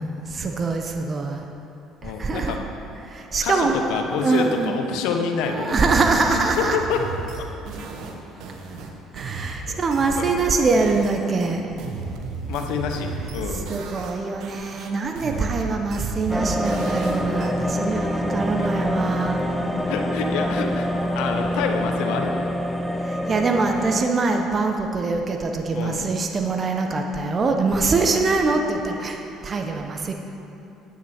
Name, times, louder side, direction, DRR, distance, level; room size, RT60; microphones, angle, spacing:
voice 1, 0.0-1.5 2.0-2.6 3.0-4.8 5.5-6.8 9.1-11.7 13.5-19.4 23.0-30.1, right 3 dB, 40° right, 3 dB, 1.0 m, -24 dB
voice 2, 2.0-2.6 3.4-5.9 6.3-7.0 7.4-7.5 9.7-9.8 10.2-10.3 12.5-13.7 18.6-18.7 19.9-20.9 21.1-22.5 25.7-26.1, left 6 dB, 75° left, 4 dB, 1.0 m, -27 dB
sound 1, 5.7-11.2 11.4-14.2 14.4-17.5, right 4 dB, 65° right, 1.2 m, -34 dB
sound 2, 16.3-24.0, equal, 5° left, 0.8 m, -25 dB
9.9 x 9.5 x 4.4 m, 2.9 s
hypercardioid pair, 65°, 0 cm